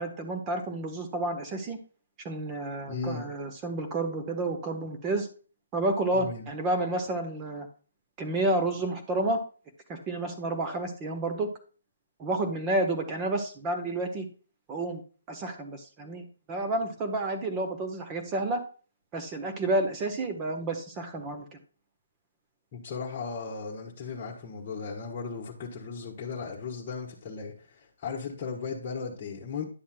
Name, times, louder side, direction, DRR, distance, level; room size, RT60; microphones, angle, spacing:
voice 1, 0.0-1.8 2.2-5.3 5.7-7.7 8.2-9.4 9.9-11.5 12.2-14.3 14.7-15.0 15.3-18.6 19.1-21.5, right 2 dB, 20° right, 5 dB, 1.2 m, -30 dB
voice 2, 2.9-3.3 6.1-6.5 22.7-29.6, left 5 dB, 30° left, -5 dB, 1.4 m, -36 dB
10.5 x 7.0 x 2.3 m, 0.38 s
figure-of-eight pair, 145°, 0 cm